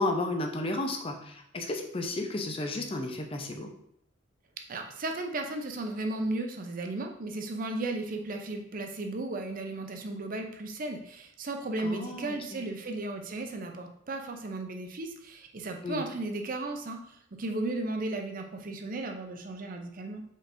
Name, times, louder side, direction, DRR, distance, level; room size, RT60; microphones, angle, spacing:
voice 1, 0.0-3.7 11.8-12.6 15.8-16.1, left 2 dB, 30° left, 4 dB, 0.5 m, -33 dB
voice 2, 4.7-20.2, right 2 dB, 45° right, 4 dB, 0.5 m, -35 dB
5.1 x 3.8 x 2.5 m, 0.69 s
head